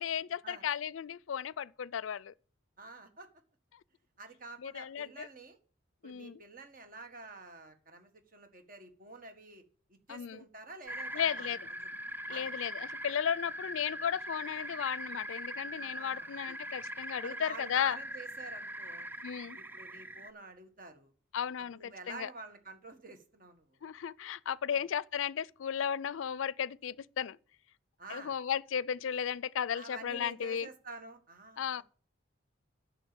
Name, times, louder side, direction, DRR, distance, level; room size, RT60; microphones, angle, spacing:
voice 1, 0.0-2.3 4.6-5.3 6.0-6.4 10.1-10.4 11.1-11.6 12.3-18.0 19.2-19.6 21.3-22.3 23.8-27.4 28.1-30.7 31.6-31.8, left 8 dB, 80° left, 0.4 m, -35 dB
voice 2, 2.8-3.3 4.2-5.6 6.0-9.6 9.9-11.8 12.3-12.5 15.7-16.5 17.2-19.1 19.5-21.1 21.7-23.8 24.7-24.8 28.0-28.3 29.7-31.8, right 3 dB, 45° right, 1.7 m, -49 dB
sound 1, 10.9-20.3, equal, 10° right, 0.4 m, -42 dB
10.0 x 6.7 x 6.9 m
head